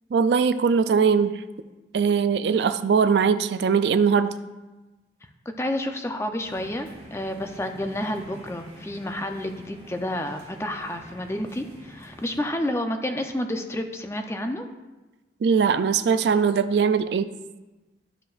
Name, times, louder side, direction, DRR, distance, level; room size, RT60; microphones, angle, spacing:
voice 1, 0.1-1.4 1.9-4.3 15.4-17.3, right 6 dB, 75° right, 12 dB, 0.3 m, -21 dB
voice 2, 5.6-14.7, left 1 dB, 15° left, 5 dB, 0.5 m, -30 dB
sound 1, 6.4-12.4, equal, 30° right, 1.5 m, -45 dB
12.0 x 5.0 x 2.4 m, 1.1 s
head